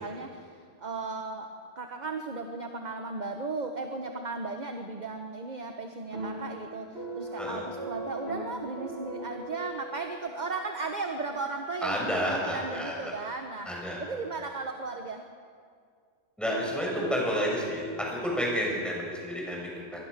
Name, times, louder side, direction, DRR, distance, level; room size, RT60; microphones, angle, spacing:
voice 1, 0.0-13.7 14.0-15.2, right 3 dB, 40° right, 4 dB, 1.3 m, -36 dB
sound 1, 6.1-10.6, right 1 dB, 55° right, 4.2 m, -39 dB
voice 2, 11.8-12.9 13.7-14.0 16.4-20.1, equal, ahead, -3 dB, 7.0 m, -30 dB
24.0 x 21.0 x 6.8 m, 2.1 s
omnidirectional pair, 1.3 m